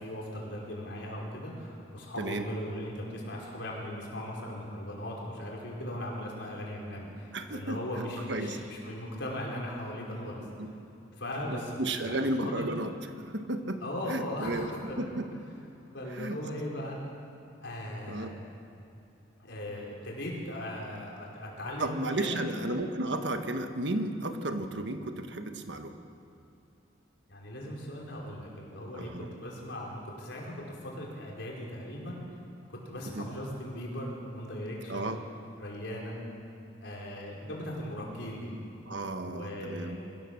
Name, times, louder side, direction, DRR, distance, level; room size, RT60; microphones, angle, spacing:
voice 1, 0.0-10.4 11.2-12.7 13.8-15.2 15.9-17.0 17.6-18.4 19.4-22.7 27.3-32.2 32.7-35.1 35.6-36.2 36.8-38.5 39.2-40.0, left 1 dB, 70° left, -2 dB, 4.9 m, -38 dB
voice 2, 7.3-7.8 8.3-8.6 10.6-10.7 11.5-12.9 13.2-13.8 14.1-14.7 15.0-15.3 16.1-16.4 18.1-18.3 21.8-26.0 28.9-29.3 33.1-33.3 34.9-35.2 38.9-40.0, right 1 dB, 65° right, 7 dB, 1.5 m, -33 dB
24.5 x 16.0 x 7.2 m, 2.7 s
head